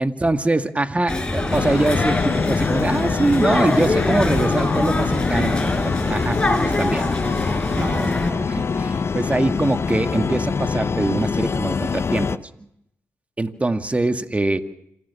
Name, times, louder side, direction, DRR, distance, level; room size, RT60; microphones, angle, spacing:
voice 1, 0.0-7.0 7.8-12.4 13.4-14.6, right 2 dB, 25° right, 8 dB, 2.1 m, -23 dB
sound 1, 1.1-8.3, left 2 dB, 15° left, 6.9 m, -24 dB
sound 2, 1.5-12.4, left 5 dB, 50° left, 1.0 m, -24 dB
27.0 x 16.0 x 7.1 m, 0.78 s
supercardioid pair, 55°, 6 cm